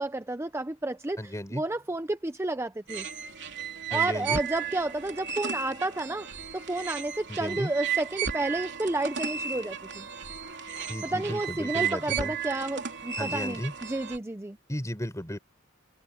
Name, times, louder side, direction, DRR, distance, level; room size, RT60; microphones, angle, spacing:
voice 1, 0.0-3.1 3.9-10.1 11.0-14.6, right 2 dB, 15° right, 0.6 m, -31 dB
voice 2, 1.2-1.6 3.9-4.4 7.3-7.7 10.9-12.3 13.2-13.7 14.7-15.4, equal, 15° left, 4.3 m, -34 dB
sound 1, 2.9-14.2, right 7 dB, 60° right, 3.6 m, -34 dB
head